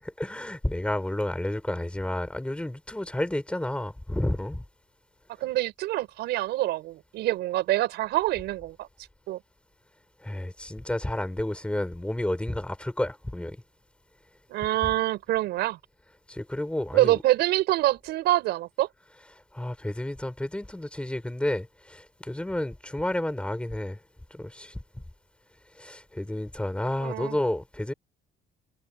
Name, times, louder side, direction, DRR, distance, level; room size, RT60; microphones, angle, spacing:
voice 1, 0.2-4.6 10.2-13.6 16.3-17.2 19.5-24.0 24.3-24.8 25.7-27.9, left 1 dB, 5° left, 5.6 m, -31 dB
voice 2, 5.4-8.9 9.3-9.4 14.5-15.8 16.9-18.9 27.0-27.4, right 16 dB, 80° right, 5.7 m, -25 dB
cardioid pair, 110°, 17 cm